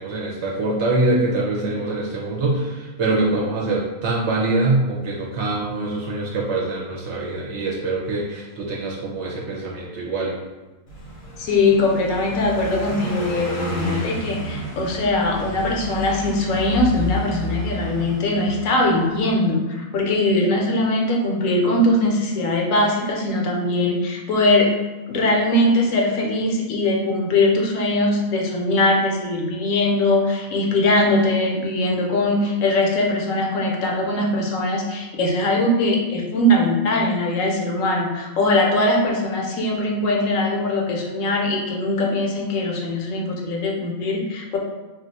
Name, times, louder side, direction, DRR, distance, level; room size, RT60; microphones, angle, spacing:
voice 1, 0.0-10.3, right 2 dB, 65° right, -3 dB, 0.8 m, -24 dB
Car passing by, 10.9-19.3, left 1 dB, 45° left, 0.7 m, -31 dB
voice 2, 11.4-24.7 25.1-44.6, left 1 dB, 75° left, 0 dB, 0.9 m, -21 dB
2.4 x 2.4 x 3.9 m, 1.2 s
omnidirectional pair, 1.5 m